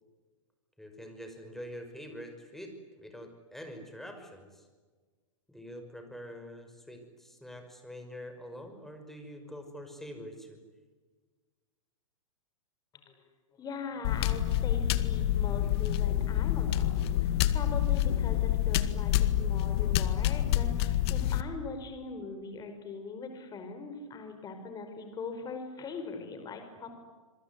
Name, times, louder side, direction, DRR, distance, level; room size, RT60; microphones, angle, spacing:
voice 1, 0.8-4.7 5.5-10.6, equal, ahead, 5 dB, 5.8 m, -45 dB
voice 2, 13.6-27.0, left 4 dB, 20° left, 6 dB, 5.3 m, -41 dB
sound 1, 14.0-21.4, left 12 dB, 50° left, 1.9 m, -27 dB
27.0 x 22.5 x 9.7 m, 1.4 s
hypercardioid pair, 120°, 17 cm